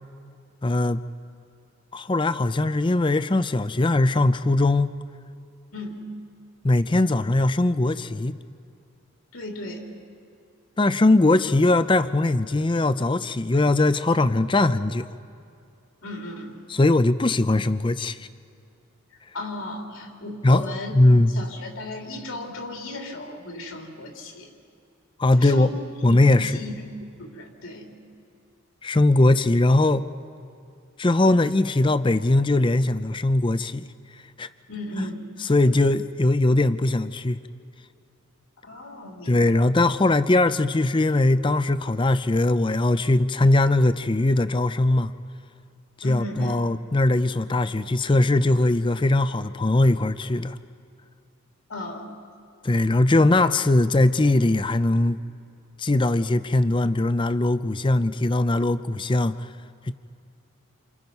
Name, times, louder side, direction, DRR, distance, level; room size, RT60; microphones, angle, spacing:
voice 1, 0.6-1.0 1.9-5.0 6.6-8.4 10.8-15.1 16.7-18.3 20.4-20.7 20.9-21.3 25.2-25.7 26.0-26.5 28.8-30.1 31.0-33.8 34.4-34.5 35.4-37.4 39.3-45.1 46.0-50.6 52.6-55.2 55.8-59.4 59.9-60.0, left 2 dB, 25° left, 13 dB, 0.5 m, -20 dB
voice 2, 5.7-6.0 9.3-9.8 16.0-16.6 19.3-20.9 21.3-24.5 25.4-25.7 26.1-26.8 27.2-27.9 34.7-35.3 38.6-39.5 46.0-46.7 51.7-52.1, left 2 dB, 80° left, 1 dB, 3.2 m, -36 dB
28.5 x 28.0 x 5.4 m, 2.5 s
head